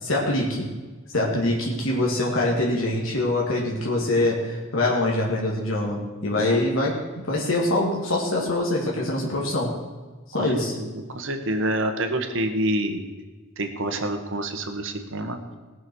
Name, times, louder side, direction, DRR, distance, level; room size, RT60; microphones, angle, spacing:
voice 1, 0.0-0.7 1.1-9.8 10.3-10.8, left 1 dB, 70° left, -2 dB, 2.3 m, -24 dB
voice 2, 10.8-13.0 13.6-15.4, right 1 dB, 65° right, 6 dB, 1.4 m, -27 dB
18.5 x 6.3 x 6.3 m, 1.3 s
head